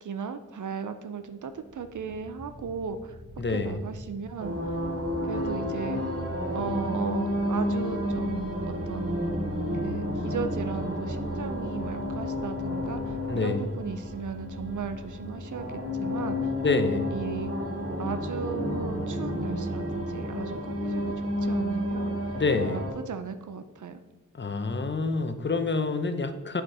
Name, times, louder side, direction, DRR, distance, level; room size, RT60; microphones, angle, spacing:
voice 1, 0.0-3.2 3.5-4.8 5.2-6.0 6.5-9.2 9.8-16.5 17.1-17.5 18.0-24.0, right 6 dB, 65° right, 9 dB, 0.6 m, -36 dB
sound 1, 1.4-18.8, equal, 30° right, 1.2 m, -48 dB
voice 2, 3.4-3.8 13.3-13.6 16.6-17.1 22.3-22.8 24.3-26.6, left 3 dB, 35° left, 9 dB, 0.8 m, -27 dB
sound 2, 4.4-22.9, left 1 dB, 45° right, 2.5 m, -31 dB
7.6 x 5.1 x 4.8 m, 1.2 s
cardioid pair, 45°, 33 cm